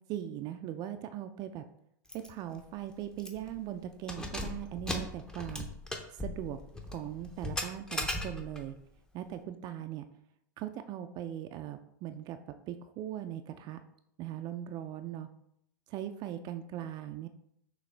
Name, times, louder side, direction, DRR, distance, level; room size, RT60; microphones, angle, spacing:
voice 1, 0.1-1.6 2.1-5.7 6.1-6.6 6.9-8.8 9.1-10.0 10.6-12.4 12.7-13.8 14.2-15.3 15.9-17.3, right 11 dB, 40° right, 8 dB, 0.3 m, -39 dB
Keys jangling, 2.1-2.3 2.6-2.7 3.2-3.5 4.0-8.7, left 1 dB, 5° left, 0.6 m, -38 dB
6.2 x 2.6 x 3.3 m, 0.74 s
hypercardioid pair, 120°, 11 cm